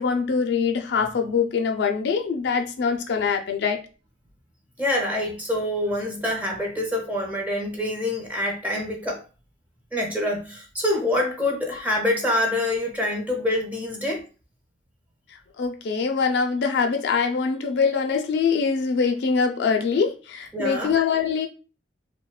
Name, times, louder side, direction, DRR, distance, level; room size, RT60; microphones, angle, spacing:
voice 1, 0.0-3.8 15.6-21.5, left 5 dB, 65° left, 0.4 m, -23 dB
voice 2, 4.8-9.2 9.9-14.2 20.5-20.9, left 1 dB, 10° right, 0.6 m, -26 dB
2.7 x 2.1 x 2.3 m
head